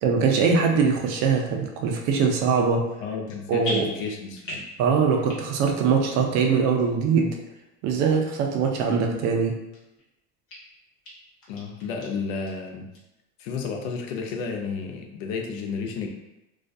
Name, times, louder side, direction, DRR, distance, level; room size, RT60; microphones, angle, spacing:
voice 1, 0.0-2.8 3.5-3.9 4.8-7.4 7.8-9.6, right 5 dB, 45° right, 2 dB, 0.4 m, -22 dB
sound 1, 1.3-1.5 2.1-2.6 2.9-3.3 3.6-4.8 5.1-5.7 6.0-6.1 6.8-6.9 7.5-7.6 8.3-8.4 8.8-8.9 9.4-10.1 10.5-10.6 11.0-11.1 11.4-12.1 12.5-12.6 12.9-13.0 13.4-13.9 14.3-14.4, equal, 35° left, 0.8 m, -38 dB
voice 2, 3.0-4.6 11.5-12.9 13.4-16.1, left 5 dB, 90° left, 2 dB, 0.6 m, -32 dB
2.3 x 2.2 x 2.5 m, 0.96 s
supercardioid pair, 145°, 38 cm